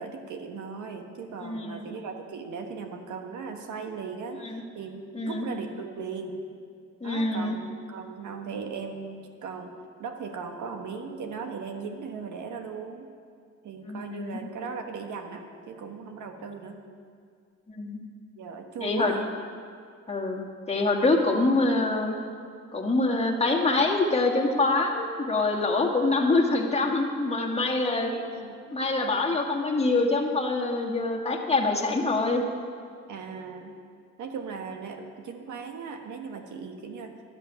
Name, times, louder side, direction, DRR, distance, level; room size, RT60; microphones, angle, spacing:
voice 1, 0.0-6.3 7.0-9.7 10.0-13.1 13.6-16.8 18.4-19.2 28.1-28.8 33.1-33.7 34.2-37.1, right 5 dB, 75° right, 4 dB, 1.4 m, -38 dB
voice 2, 1.4-1.9 4.4-4.6 5.1-5.4 7.0-7.6 13.8-14.4 17.8-18.0 18.8-19.1 20.1-22.1 22.7-28.1 28.7-32.4, left 2 dB, 20° left, 0 dB, 1.8 m, -25 dB
11.5 x 7.5 x 9.5 m, 2.2 s
cardioid pair, 90°, 30 cm